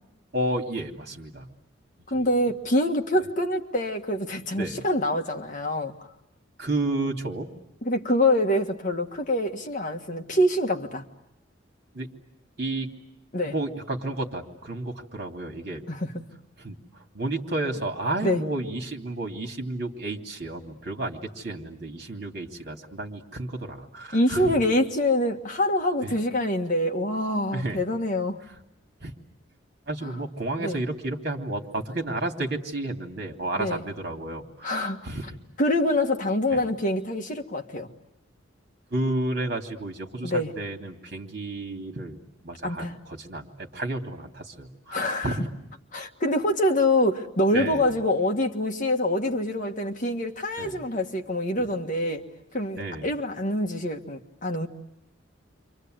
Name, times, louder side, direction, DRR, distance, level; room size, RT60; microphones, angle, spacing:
voice 1, 0.3-1.5 2.1-2.3 4.6-4.8 6.6-7.5 11.9-12.1 12.6-12.9 13.4-15.8 16.6-24.6 26.0-26.2 27.5-27.8 29.0-29.1 29.9-35.4 36.5-36.7 38.9-45.5 47.5-47.9 50.6-50.8 51.6-51.7 52.8-53.1, right 2 dB, 55° right, 2 dB, 3.0 m, -32 dB
voice 2, 2.1-5.9 7.8-11.0 13.3-13.5 15.9-16.1 18.2-18.4 24.1-28.4 30.6-30.8 33.6-33.8 34.6-35.1 35.6-37.9 40.2-40.5 42.6-43.0 44.9-45.3 45.9-52.2 52.5-54.7, left 1 dB, 40° left, 3 dB, 1.8 m, -25 dB
29.5 x 25.0 x 8.0 m, 0.81 s
head